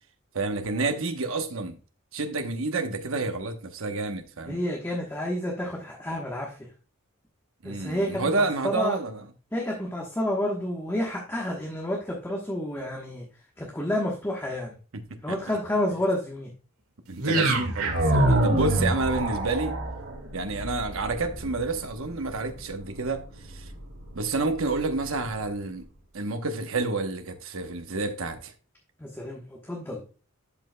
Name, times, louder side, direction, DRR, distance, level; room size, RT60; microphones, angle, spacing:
voice 1, 0.3-1.8 2.1-4.6 7.6-9.2 14.9-15.4 17.1-19.7 20.3-23.7 24.1-25.8 26.1-28.5, right 3 dB, 70° right, 1.0 m, -29 dB
voice 2, 4.5-6.6 7.6-9.0 9.5-13.2 13.6-14.7 15.2-16.5 18.8-18.9 29.0-30.0, left 1 dB, 10° left, 1.1 m, -30 dB
sound 1, 17.2-25.4, right 1 dB, 85° right, 2.0 m, -28 dB
11.5 x 5.4 x 2.2 m
head